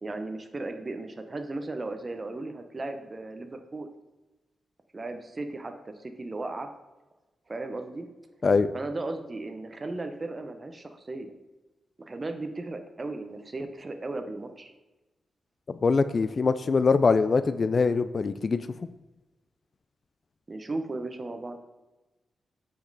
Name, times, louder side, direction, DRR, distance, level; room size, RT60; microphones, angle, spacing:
voice 1, 0.0-3.9 4.9-6.7 7.5-8.1 8.7-11.3 12.0-14.7 20.5-21.6, right 2 dB, 30° right, 7 dB, 0.7 m, -36 dB
voice 2, 15.7-18.7, left 4 dB, 45° left, 12 dB, 0.3 m, -23 dB
8.6 x 5.1 x 4.0 m, 1.1 s
cardioid pair, 90°, 0 cm